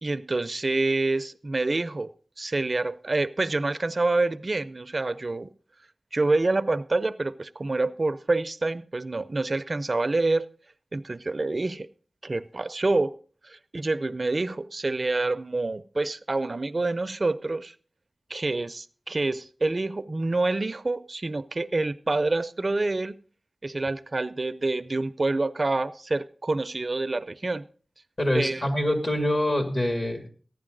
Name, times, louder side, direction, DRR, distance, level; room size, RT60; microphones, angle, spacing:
voice 1, 0.0-2.1 2.4-5.5 6.1-10.5 10.9-11.9 12.2-13.2 13.4-17.7 18.3-23.2 23.6-27.7 28.3-28.6, right 2 dB, 50° right, 0.5 m, -27 dB
voice 2, 28.2-30.3, left 1 dB, 50° left, 2.5 m, -25 dB
15.0 x 10.5 x 3.9 m
wide cardioid pair, 55°, 0 cm